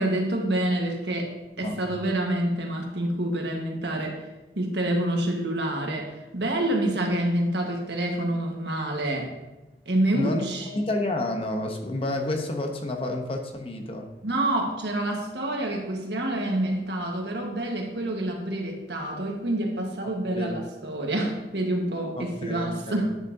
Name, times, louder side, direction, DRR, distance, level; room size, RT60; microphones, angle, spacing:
voice 1, 0.0-4.3 4.5-9.3 9.9-10.8 14.2-23.2, right 1 dB, 75° right, 1 dB, 1.4 m, -27 dB
voice 2, 10.1-14.1 20.0-20.5 22.2-23.0, left 1 dB, 30° left, 3 dB, 0.9 m, -30 dB
11.0 x 7.1 x 2.7 m, 1.0 s
head